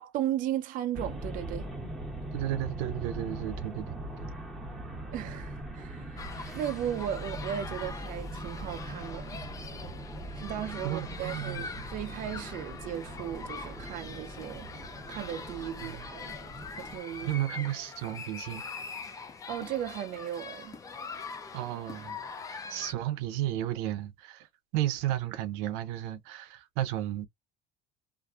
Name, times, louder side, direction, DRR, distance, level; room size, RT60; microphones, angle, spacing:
voice 1, 0.0-1.6 5.1-6.2 6.5-9.4 10.4-14.7 15.1-16.3 16.7-17.3 19.5-20.8, right 11 dB, 45° right, 0.5 m, -36 dB
sound 1, 0.9-17.0, right 1 dB, ahead, 1.4 m, -41 dB
voice 2, 2.3-4.3 10.8-11.7 15.8-16.0 17.2-18.6 21.5-22.2 22.5-24.5 24.7-27.3, right 13 dB, 90° right, 0.6 m, -33 dB
sound 2, 6.2-22.9, left 5 dB, 20° left, 0.4 m, -43 dB
2.5 x 2.5 x 2.4 m
cardioid pair, 145°, 19 cm